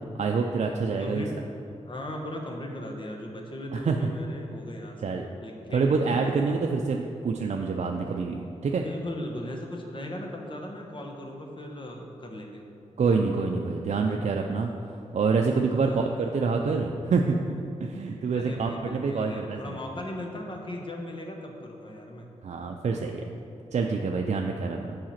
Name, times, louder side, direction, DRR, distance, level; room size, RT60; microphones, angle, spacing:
voice 1, 0.2-1.2 3.7-4.0 5.0-5.3 5.7-8.8 13.0-14.7 15.1-17.4 17.8-19.6 22.4-23.2 23.7-25.0, right 4 dB, 60° right, 2 dB, 0.5 m, -26 dB
voice 2, 1.0-1.3 1.8-5.0 5.4-6.7 8.7-12.7 15.8-16.1 18.3-22.3, left 1 dB, 40° left, 1 dB, 1.2 m, -38 dB
7.5 x 4.9 x 5.8 m, 2.7 s
cardioid pair, 65°, 13 cm